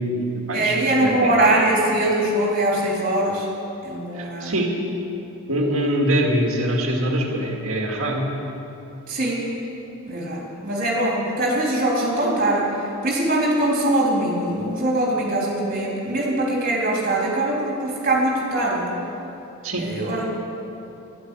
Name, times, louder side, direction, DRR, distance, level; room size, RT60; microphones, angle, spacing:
voice 1, 0.0-1.4 4.1-4.7 5.5-8.3 19.6-19.8, right 1 dB, 65° right, 0 dB, 2.1 m, -23 dB
voice 2, 0.5-3.5 3.8-4.6 9.1-9.5 10.1-12.6 13.0-18.9 19.8-20.3, right 1 dB, 40° right, -3 dB, 3.6 m, -22 dB
11.5 x 11.0 x 8.4 m, 2.9 s
head